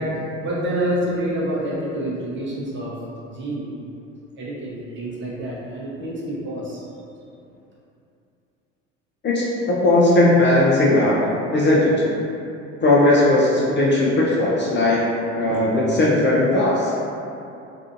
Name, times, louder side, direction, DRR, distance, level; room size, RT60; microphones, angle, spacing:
voice 1, 0.0-3.0 3.2-3.7 4.4-6.8, right 1 dB, 30° right, -5 dB, 0.7 m, -27 dB
voice 2, 9.2-11.2 11.5-11.9 12.8-15.0 15.3-16.9, left 2 dB, 30° left, -5 dB, 0.4 m, -17 dB
2.6 x 2.4 x 2.4 m, 2.7 s
hypercardioid pair, 70°, 38 cm